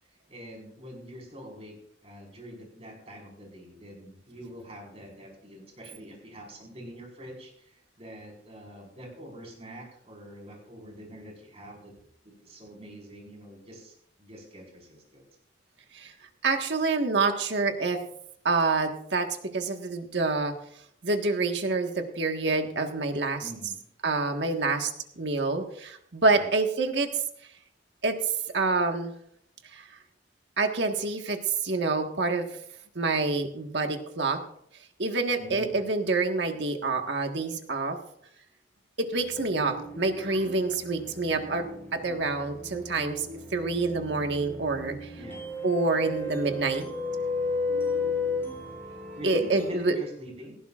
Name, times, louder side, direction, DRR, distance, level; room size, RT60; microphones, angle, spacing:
voice 1, 0.3-11.9 12.2-15.2 23.4-23.8 26.3-26.5 35.4-35.8 45.1-45.4 49.1-50.5, equal, 35° right, -1 dB, 4.9 m, -45 dB
voice 2, 16.4-18.0 18.4-19.3 19.5-20.5 21.0-23.4 24.0-24.9 25.2-27.1 28.0-28.1 28.5-29.1 29.7-29.8 30.6-32.5 32.9-34.4 35.0-38.0 39.0-41.6 41.9-43.3 43.5-45.1 45.6-46.8 49.2-49.9, right 3 dB, 70° right, 4 dB, 1.6 m, -27 dB
sound 1, 39.1-49.8, left 2 dB, 15° left, 4.2 m, -34 dB
18.0 x 15.0 x 2.5 m, 0.68 s
head